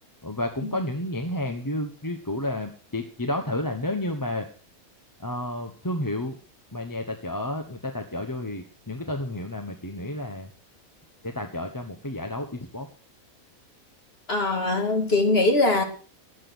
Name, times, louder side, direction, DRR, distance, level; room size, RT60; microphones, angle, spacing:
voice 1, 0.2-4.5 5.2-6.4 6.7-10.5 11.2-12.9, left 1 dB, 15° left, 4 dB, 1.1 m, -31 dB
voice 2, 14.3-15.8, left 2 dB, 45° left, 3 dB, 2.7 m, -22 dB
17.5 x 7.6 x 6.1 m, 0.40 s
omnidirectional pair, 1.5 m